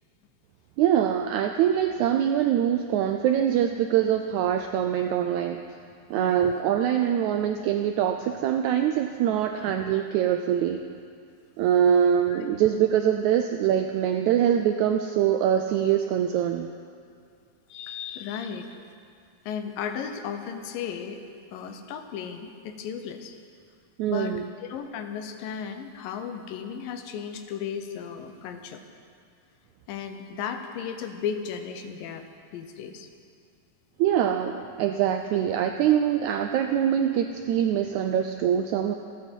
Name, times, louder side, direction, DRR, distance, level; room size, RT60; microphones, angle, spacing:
voice 1, 0.8-5.6 6.1-10.8 11.6-16.7 24.0-24.5 34.0-38.9, right 9 dB, 85° right, 6 dB, 1.7 m, -24 dB
voice 2, 17.7-18.8 19.5-21.2 21.5-23.4 24.1-28.8 29.9-32.2 32.5-33.1, left 7 dB, 80° left, 7 dB, 2.6 m, -35 dB
27.0 x 9.6 x 4.5 m, 2.3 s
omnidirectional pair, 4.0 m